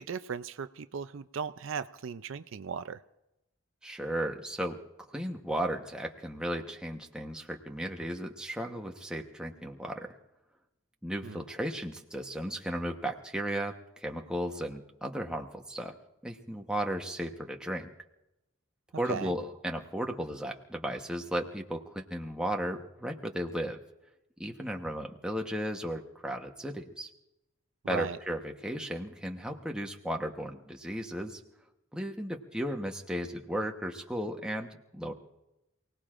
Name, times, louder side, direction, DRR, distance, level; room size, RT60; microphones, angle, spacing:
voice 1, 0.0-3.0 11.2-11.4 19.1-19.3 27.8-28.2, right 6 dB, 60° right, 12 dB, 0.4 m, -37 dB
voice 2, 3.8-4.8 5.1-10.2 11.0-16.0 16.2-17.9 19.0-23.8 24.4-27.1 27.9-31.4 31.9-35.1, right 1 dB, 5° right, 2 dB, 1.0 m, -35 dB
28.5 x 18.5 x 2.5 m, 0.92 s
head